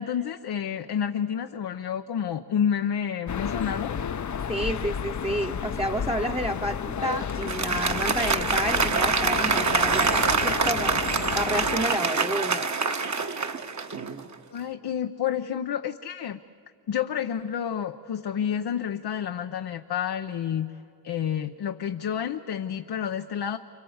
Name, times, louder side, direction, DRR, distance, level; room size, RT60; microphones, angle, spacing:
voice 1, 0.0-3.9 14.5-16.4 16.9-20.7 21.0-23.6, left 8 dB, 85° left, 7 dB, 0.7 m, -29 dB
sound 1, 3.3-11.9, left 7 dB, 50° left, 0.7 m, -32 dB
voice 2, 4.5-12.7, right 1 dB, 15° right, 2 dB, 0.9 m, -30 dB
Applause, 7.3-14.3, right 4 dB, 45° right, 1.2 m, -25 dB
28.0 x 25.0 x 7.9 m, 2.5 s
cardioid pair, 50°, 38 cm